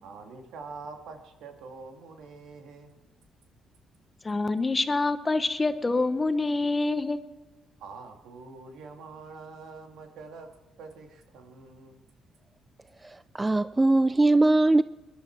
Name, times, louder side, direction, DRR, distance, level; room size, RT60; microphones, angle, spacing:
voice 1, 0.0-3.0 7.8-10.5 10.8-12.0, right 4 dB, 85° right, 2.2 m, -45 dB
voice 2, 4.2-7.2, left 3 dB, 25° left, 1.0 m, -26 dB
voice 3, 13.0-14.8, right 2 dB, 20° right, 0.4 m, -21 dB
21.5 x 11.5 x 4.6 m
cardioid pair, 90°, 0 cm